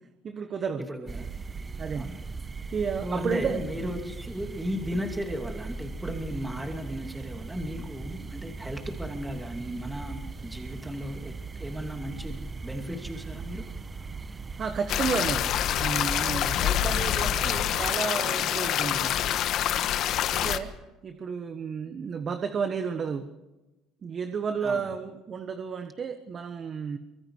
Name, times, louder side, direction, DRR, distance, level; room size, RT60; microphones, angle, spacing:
voice 1, 0.2-0.9 1.8-2.1 2.7-3.6 14.6-19.3 20.3-20.8 21.0-23.3 24.0-27.0, right 6 dB, 40° right, 8 dB, 1.5 m, -32 dB
voice 2, 0.8-1.3 2.0-2.2 3.0-13.6 16.6-16.9 20.4-20.6 24.6-24.9, equal, 5° right, 3 dB, 2.5 m, -35 dB
sound 1, 1.1-17.9, right 4 dB, 25° right, 1.1 m, -39 dB
sound 2, 14.9-20.6, left 11 dB, 60° left, 1.3 m, -26 dB
25.0 x 23.0 x 4.8 m, 1.0 s
supercardioid pair, 105°, 0 cm